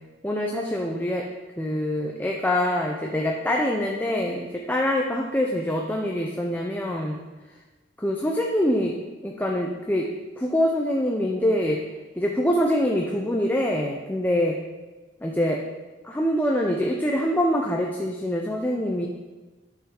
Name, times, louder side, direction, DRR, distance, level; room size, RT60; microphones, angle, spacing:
voice 1, 0.2-1.3 1.6-7.2 8.0-8.9 9.2-10.1 10.4-11.8 12.2-14.6 15.2-15.6 16.0-19.1, equal, 10° left, 0 dB, 0.6 m, -24 dB
10.5 x 7.1 x 4.5 m, 1.2 s
head